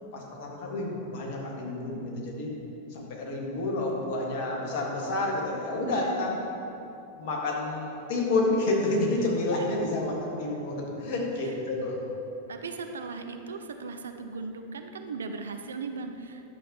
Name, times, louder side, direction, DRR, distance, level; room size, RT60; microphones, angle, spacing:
voice 1, 0.1-2.5 2.9-6.4 7.2-12.0, left 2 dB, 50° left, -2 dB, 1.7 m, -29 dB
voice 2, 5.8-6.4 11.0-11.2 12.5-16.4, right 4 dB, 70° right, 7 dB, 0.5 m, -38 dB
11.0 x 7.0 x 3.0 m, 2.9 s
figure-of-eight pair, 90°, 0 cm